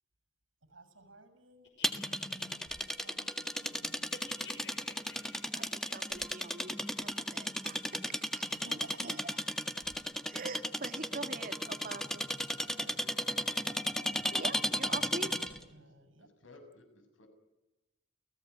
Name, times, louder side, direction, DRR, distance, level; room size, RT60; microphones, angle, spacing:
voice 1, 0.6-1.7 2.2-4.1 4.6-4.9 8.5-9.1 15.6-16.3, right 2 dB, 90° right, 10 dB, 7.0 m, -55 dB
sound 1, 1.6-3.7 4.0-6.6, left 5 dB, 65° left, 6.6 m, -53 dB
sound 2, 1.8-15.6, equal, ahead, 1.7 m, -35 dB
voice 2, 5.5-8.5 9.0-9.4 10.3-12.3 14.3-15.4, right 3 dB, 45° right, 8 dB, 2.2 m, -44 dB
voice 3, 12.7-13.5 15.5-17.3, left 2 dB, 85° left, 7 dB, 6.8 m, -58 dB
29.5 x 17.5 x 9.5 m, 1.0 s
head